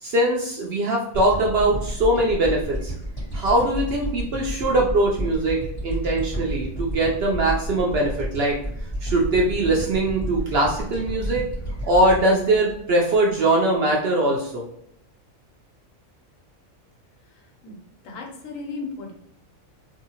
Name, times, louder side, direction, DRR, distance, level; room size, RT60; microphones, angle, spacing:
voice 1, 0.0-2.9 3.3-8.6 9.0-11.4 11.8-14.6, right 1 dB, 65° right, -1 dB, 0.6 m, -21 dB
sound 1, 1.1-13.6, right 1 dB, 15° left, 1.5 m, -31 dB
voice 2, 17.2-17.8 18.0-19.1, left 3 dB, 75° left, 1 dB, 1.1 m, -36 dB
2.7 x 2.7 x 2.8 m, 0.73 s
omnidirectional pair, 1.4 m